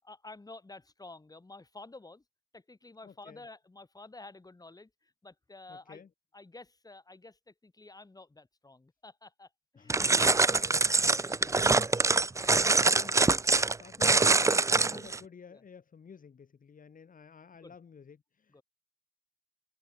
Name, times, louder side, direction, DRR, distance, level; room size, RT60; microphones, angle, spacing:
voice 1, 0.0-2.2 2.5-6.0 6.3-10.1 10.8-11.6 15.5-15.6 17.6-17.7 18.5-18.6, left 2 dB, 20° left, 6.5 m, -51 dB
voice 2, 3.0-3.5 5.7-6.1 9.8-10.9 11.3-11.9 12.6-13.3 13.8-18.6, left 6 dB, 45° left, 4.0 m, -52 dB
sound 1, 9.9-15.2, right 3 dB, 15° right, 0.5 m, -24 dB
cardioid pair, 90°, 20 cm